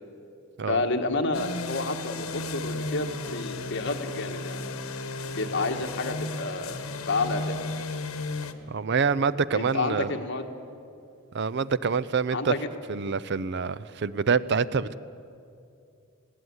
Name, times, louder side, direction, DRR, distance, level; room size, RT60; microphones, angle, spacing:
voice 1, 0.7-4.6 5.4-6.8 7.1-7.6 9.5-10.5 12.3-12.7, left 3 dB, 55° left, 4 dB, 1.7 m, -29 dB
sound 1, 1.3-8.5, left 3 dB, 80° left, 1.3 m, -34 dB
voice 2, 8.7-10.1 11.3-12.5 12.9-15.0, right 5 dB, 55° right, 17 dB, 0.5 m, -26 dB
20.5 x 17.0 x 9.7 m, 2.5 s
head